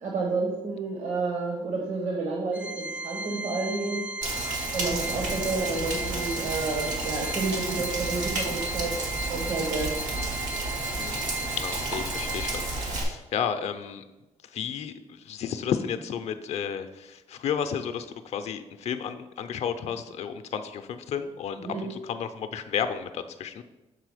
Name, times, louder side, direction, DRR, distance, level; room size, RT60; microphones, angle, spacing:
voice 1, 0.0-4.0 4.7-9.9 21.6-21.9, right 3 dB, 65° right, 0 dB, 1.1 m, -30 dB
Organ, 2.5-13.1, right 2 dB, 10° right, 0.3 m, -36 dB
Rain, 4.2-13.0, right 2 dB, 85° right, 1.6 m, -32 dB
voice 2, 11.0-11.3 11.6-14.0 14.5-23.6, left 8 dB, 60° left, 9 dB, 0.5 m, -32 dB
6.8 x 3.8 x 4.9 m, 1.0 s
cardioid pair, 130°, 13 cm